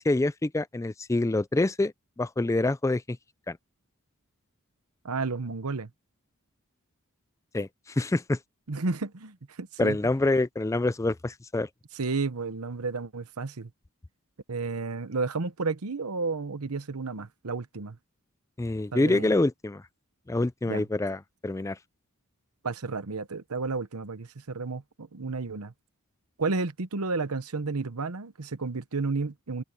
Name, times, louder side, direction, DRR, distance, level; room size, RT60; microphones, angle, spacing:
voice 1, 0.0-3.2 3.5-3.6 7.5-8.4 9.8-11.7 18.6-19.8 20.3-21.8, left 2 dB, 15° left, 0.4 m, -26 dB
voice 2, 5.0-5.9 8.7-10.0 11.9-13.7 14.5-18.0 18.9-19.3 20.6-20.8 22.6-25.7 26.4-29.6, right 4 dB, 80° right, 1.0 m, -32 dB
head